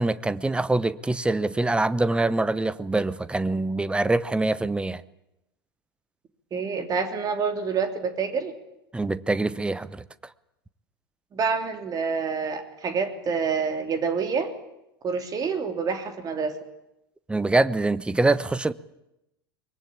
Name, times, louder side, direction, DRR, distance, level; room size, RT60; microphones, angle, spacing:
voice 1, 0.0-5.0 8.9-10.0 17.3-18.7, right 2 dB, 10° right, 0.9 m, -24 dB
voice 2, 6.5-8.5 11.3-14.5 15.0-16.5, right 5 dB, 30° right, 3.3 m, -27 dB
23.5 x 22.0 x 8.7 m
figure-of-eight pair, 80°, 13 cm